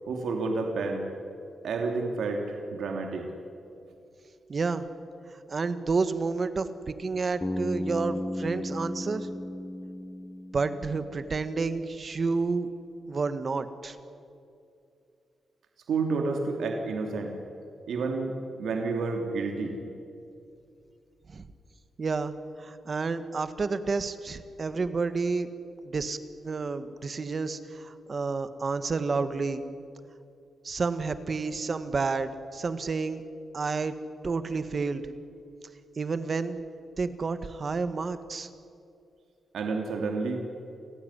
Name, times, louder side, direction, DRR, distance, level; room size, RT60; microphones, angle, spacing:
voice 1, 0.1-1.1 1.6-3.3 15.9-17.3 17.9-19.7 39.5-40.4, right 3 dB, 85° right, 2 dB, 3.0 m, -30 dB
voice 2, 4.5-4.8 5.5-9.3 10.5-12.7 13.1-14.0 21.3-21.5 22.0-22.3 22.6-25.5 25.8-26.2 26.4-29.6 30.6-33.2 33.5-33.9 34.2-35.0 36.0-36.6 37.0-38.5, right 4 dB, 40° right, 11 dB, 1.5 m, -30 dB
Bass guitar, 7.4-11.4, left 1 dB, 15° left, 0.8 m, -35 dB
29.5 x 16.0 x 9.9 m, 2.6 s
wide cardioid pair, 120°, 0 cm